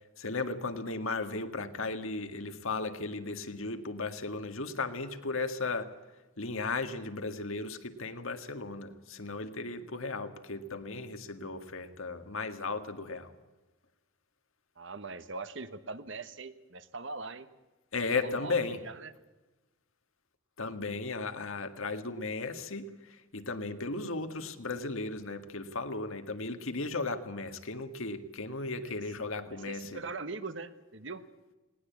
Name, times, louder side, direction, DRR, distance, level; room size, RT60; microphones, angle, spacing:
voice 1, 0.2-5.9 6.4-13.3 17.9-18.8 20.6-22.9 23.3-30.0, left 3 dB, 70° left, 8 dB, 1.9 m, -35 dB
voice 2, 14.8-17.5 18.1-19.1 28.7-29.0 29.4-31.2, right 3 dB, 60° right, 12 dB, 1.3 m, -41 dB
20.0 x 18.5 x 8.5 m, 1.1 s
head